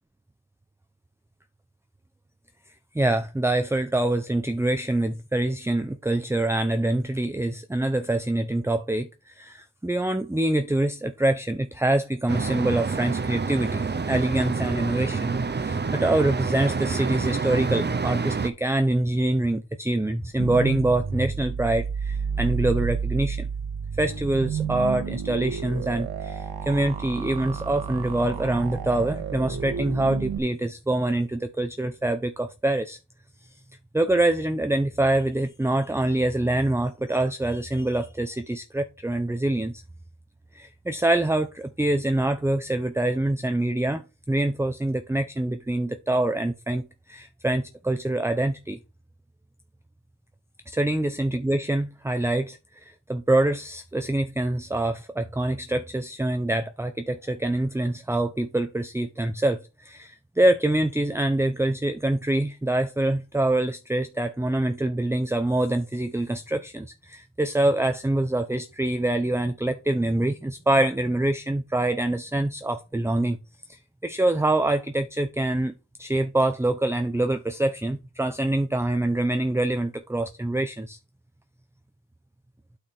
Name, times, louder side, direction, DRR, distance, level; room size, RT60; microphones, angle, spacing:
voice 1, 2.9-23.5 24.0-33.0 33.9-39.8 40.5-48.8 50.7-73.4 73.7-81.0, right 1 dB, 5° right, 0.9 m, -25 dB
sound 1, 12.3-18.5, right 4 dB, 25° right, 1.1 m, -27 dB
sound 2, 20.4-30.4, right 6 dB, 60° right, 2.0 m, -31 dB
8.8 x 5.1 x 4.5 m
cardioid pair, 75°, 42 cm